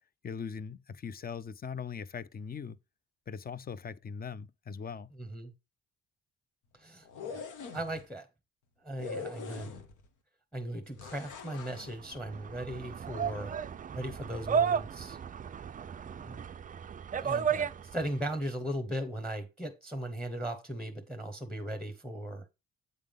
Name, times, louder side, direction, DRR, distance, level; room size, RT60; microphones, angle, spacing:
voice 1, 0.2-2.8 3.3-5.1, left 6 dB, 30° left, 0.5 m, -40 dB
voice 2, 5.2-5.5 6.7-7.1 7.3-7.4 7.7-8.3 8.8-9.7 10.5-13.5 13.9-15.2 16.0-16.4 17.2-22.4, right 1 dB, 5° left, 1.0 m, -38 dB
sound 1, 7.0-8.0 9.0-10.1 11.0-11.9, left 5 dB, 85° left, 1.4 m, -42 dB
sound 2, 11.8-18.2, right 7 dB, 30° right, 0.4 m, -34 dB
8.3 x 3.7 x 5.1 m
cardioid pair, 90°, 30 cm